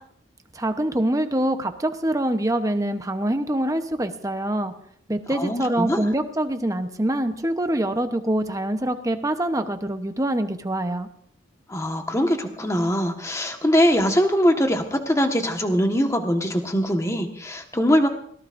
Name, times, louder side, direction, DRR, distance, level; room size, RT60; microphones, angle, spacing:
voice 1, 0.5-4.7 5.1-11.1, right 1 dB, 15° right, 8 dB, 0.9 m, -25 dB
voice 2, 5.3-6.1 11.7-18.1, equal, 15° left, 4 dB, 1.4 m, -22 dB
22.5 x 18.0 x 2.6 m, 0.63 s
head